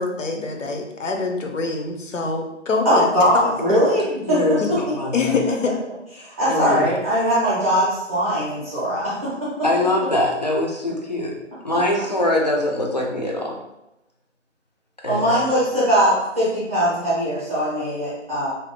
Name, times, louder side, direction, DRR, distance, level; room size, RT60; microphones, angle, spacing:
voice 1, 0.0-3.1 3.3-3.5 4.6-4.7 5.1-5.7, left 4 dB, 80° left, 3 dB, 0.7 m, -24 dB
voice 2, 2.8-4.8 6.2-9.5 11.7-11.8 15.0-18.5, equal, 10° right, -10 dB, 0.6 m, -21 dB
voice 3, 4.3-5.3 6.4-6.9 9.6-11.4 11.6-13.6 15.0-15.5, left 1 dB, 35° left, -1 dB, 0.4 m, -23 dB
2.7 x 2.0 x 3.4 m, 0.87 s
figure-of-eight pair, 150°, 37 cm